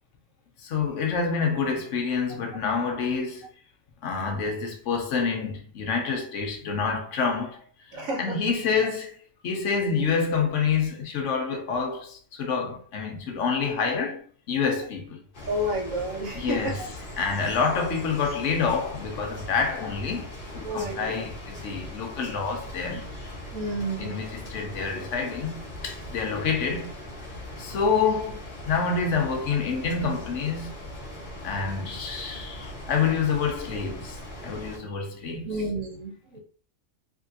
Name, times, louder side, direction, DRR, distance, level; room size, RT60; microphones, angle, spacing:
voice 1, 0.6-3.5 4.0-7.6 7.9-9.2 9.4-15.2 16.3-16.9 17.2-23.1 24.0-27.0 27.6-30.7 31.4-34.2 34.4-35.5, left 5 dB, 70° left, 1.0 m, -27 dB
voice 2, 7.9-8.4 15.5-16.8 20.6-21.2 23.5-24.2 35.4-36.4, right 1 dB, 90° right, 1.4 m, -30 dB
sound 1, 15.3-34.8, left 1 dB, 45° left, 1.0 m, -40 dB
3.4 x 2.8 x 2.7 m
omnidirectional pair, 1.4 m